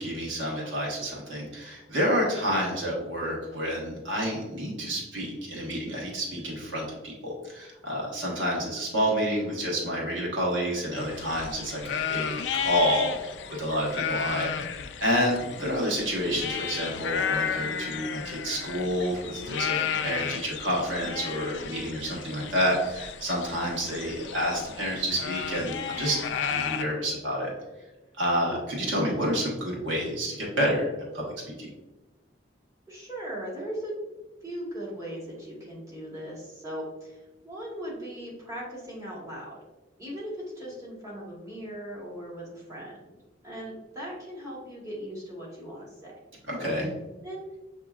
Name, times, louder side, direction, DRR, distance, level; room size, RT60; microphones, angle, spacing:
voice 1, 0.0-26.2 26.5-27.5 28.2-30.9 31.1-31.7 46.5-46.9, equal, 85° right, -3 dB, 1.4 m, -29 dB
sound 1, 11.0-26.8, left 7 dB, 70° left, 0.3 m, -33 dB
voice 2, 28.3-28.7 32.9-34.0 34.4-39.5 40.0-42.9 43.4-46.1 47.2-47.4, equal, 20° right, -6 dB, 1.3 m, -38 dB
7.1 x 2.9 x 2.4 m, 1.1 s
head